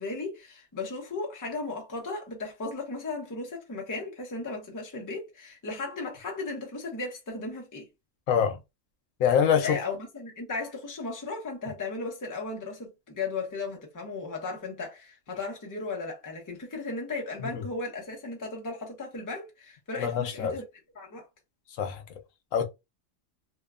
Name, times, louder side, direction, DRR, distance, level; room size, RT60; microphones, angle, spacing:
voice 1, 0.0-7.9 9.6-20.6 20.9-21.3, left 3 dB, 20° left, 0.6 m, -36 dB
voice 2, 8.3-8.6 9.2-9.8 17.5-17.6 20.0-20.5 21.8-22.0 22.5-22.7, left 8 dB, 80° left, 1.0 m, -24 dB
2.7 x 2.1 x 2.3 m
omnidirectional pair, 1.3 m